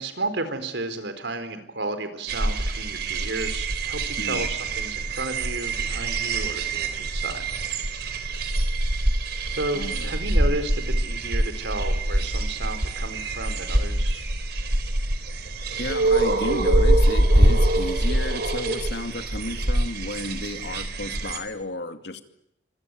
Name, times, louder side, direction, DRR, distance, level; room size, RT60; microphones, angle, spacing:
voice 1, 0.0-7.5 9.5-14.2, right 2 dB, 75° right, 10 dB, 4.3 m, -32 dB
sound 1, 2.3-21.4, right 1 dB, 60° right, 4.0 m, -24 dB
voice 2, 4.2-4.5 9.7-10.1 15.8-22.2, left 2 dB, 70° left, 7 dB, 2.6 m, -33 dB
26.0 x 24.5 x 9.3 m, 0.80 s
head